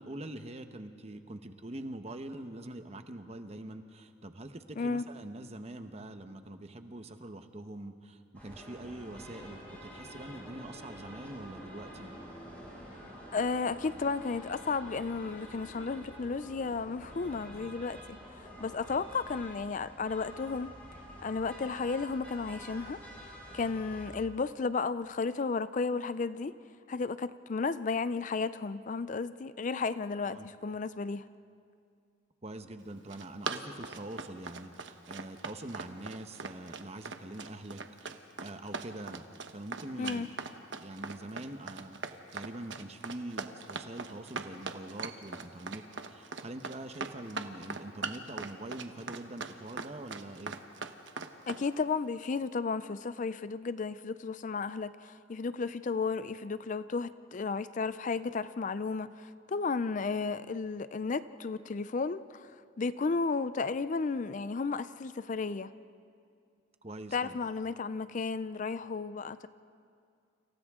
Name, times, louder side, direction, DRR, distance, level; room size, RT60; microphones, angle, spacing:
voice 1, 0.0-12.1 30.2-30.5 32.4-40.3 40.7-50.5 66.8-67.4, right 1 dB, 35° right, 8 dB, 1.0 m, -44 dB
sound 1, 8.3-24.1, equal, 10° left, 7.0 m, -48 dB
voice 2, 13.3-18.0 18.4-20.7 21.2-23.0 23.5-26.5 26.9-31.2 40.0-40.3 51.5-65.7 67.1-69.5, left 4 dB, 40° left, 14 dB, 0.4 m, -33 dB
Run, 32.9-51.6, right 4 dB, 70° right, 1.1 m, -40 dB
29.5 x 27.5 x 3.7 m, 2.3 s
head